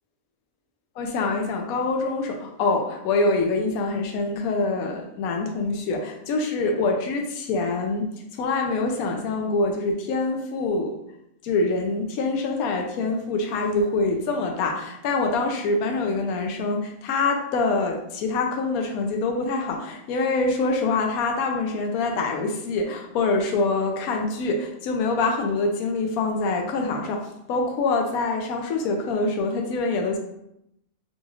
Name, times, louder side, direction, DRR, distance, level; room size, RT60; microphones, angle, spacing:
voice 1, 1.0-8.1 8.4-11.0 11.4-30.2, left 3 dB, 85° left, 2 dB, 1.0 m, -25 dB
4.0 x 2.3 x 3.0 m, 0.80 s
omnidirectional pair, 1.5 m